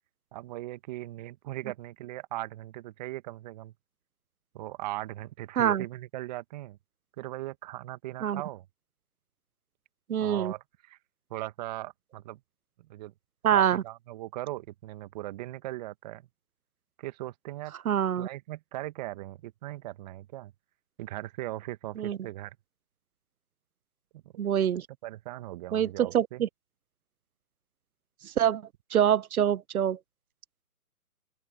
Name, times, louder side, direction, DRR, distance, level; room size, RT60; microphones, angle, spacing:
voice 1, 0.3-3.7 4.5-6.8 7.2-8.6 10.2-11.0 11.3-12.4 12.9-13.1 13.5-16.3 17.0-17.7 18.2-20.5 21.0-22.6 24.1-24.2 25.0-26.4, right 16 dB, 25° right, 1.5 m, -39 dB
voice 2, 10.1-10.5 13.4-13.8 17.8-18.3 22.0-22.2 24.4-24.9 25.7-26.5 28.2-28.6 28.9-30.0, right 9 dB, 65° right, 0.9 m, -25 dB
open air
hypercardioid pair, 145°, 47 cm